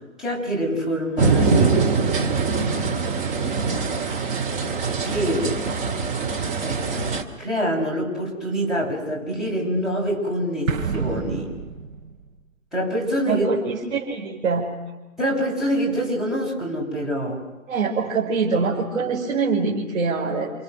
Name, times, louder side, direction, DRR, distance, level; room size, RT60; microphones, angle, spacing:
voice 1, 0.2-1.8 5.0-5.5 6.6-7.1 7.4-11.5 12.7-13.4 15.2-17.4, equal, ahead, -6 dB, 6.5 m, -25 dB
sound 1, 1.2-7.2, right 4 dB, 20° right, 2.1 m, -23 dB
Explosion, 10.7-12.3, right 5 dB, 80° right, 5.2 m, -28 dB
voice 2, 13.3-14.7 17.7-20.5, right 4 dB, 60° right, -2 dB, 5.3 m, -24 dB
29.5 x 28.0 x 6.6 m, 1.1 s
hypercardioid pair, 150°, 40 cm